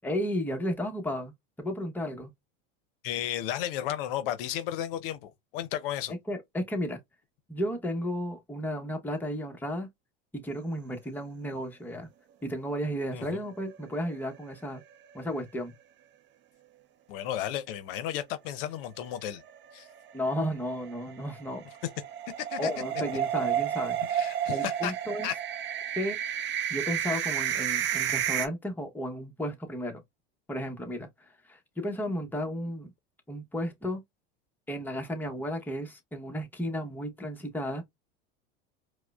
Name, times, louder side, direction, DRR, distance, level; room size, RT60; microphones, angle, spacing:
voice 1, 0.0-1.3 1.6-2.3 6.1-7.0 7.5-9.9 10.4-12.1 12.4-14.8 15.1-15.7 20.1-21.6 22.6-24.0 24.5-25.3 26.0-26.2 26.7-30.0 30.5-31.1 31.5-32.9 33.3-34.0 34.7-37.8, equal, 5° left, 0.8 m, -33 dB
voice 2, 3.0-6.1 13.1-13.4 17.1-19.4 19.7-19.9 22.5-22.7 24.1-24.9 25.2-25.3, left 11 dB, 70° left, 0.6 m, -33 dB
sound 1, 13.5-14.4 14.8-14.9 15.2-15.3 19.4-28.5, right 10 dB, 40° right, 0.6 m, -31 dB
4.7 x 2.1 x 2.3 m
supercardioid pair, 100°, 29 cm